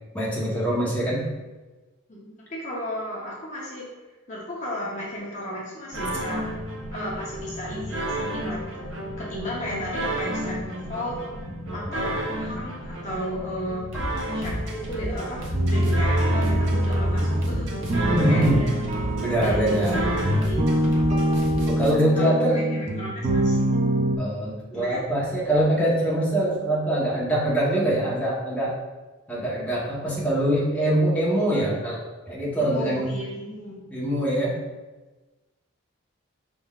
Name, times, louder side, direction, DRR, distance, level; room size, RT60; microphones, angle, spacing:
voice 1, 0.1-1.2 11.6-11.9 18.1-18.7 19.2-20.0 21.7-22.6 24.2-28.7 29.3-32.0 32.3-33.1 33.9-34.6, right 1 dB, 5° left, -7 dB, 1.0 m, -23 dB
voice 2, 2.1-3.8 4.3-6.4 6.9-8.9 9.2-11.2 11.7-13.8 14.3-18.7 19.4-20.9 22.1-23.8 24.7-25.0 32.5-33.8, left 1 dB, 35° left, -5 dB, 0.8 m, -34 dB
sound 1, 5.9-21.9, right 1 dB, 65° right, 0.8 m, -31 dB
sound 2, 15.5-24.2, right 1 dB, 30° right, 0.4 m, -24 dB
5.0 x 3.7 x 2.4 m, 1.2 s
head